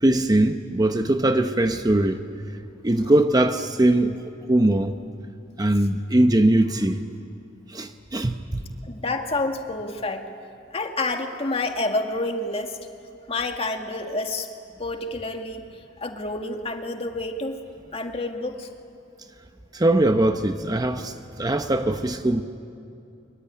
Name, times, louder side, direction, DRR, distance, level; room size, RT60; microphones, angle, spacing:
voice 1, 0.0-2.2 2.8-4.9 5.6-7.0 7.7-8.6 19.7-22.4, right 1 dB, 20° right, 0.8 m, -21 dB
voice 2, 8.8-10.2 10.7-12.8 13.3-14.5 14.8-15.6 16.0-17.6 17.9-18.7, left 2 dB, 35° left, 1.8 m, -28 dB
24.0 x 23.5 x 10.0 m
head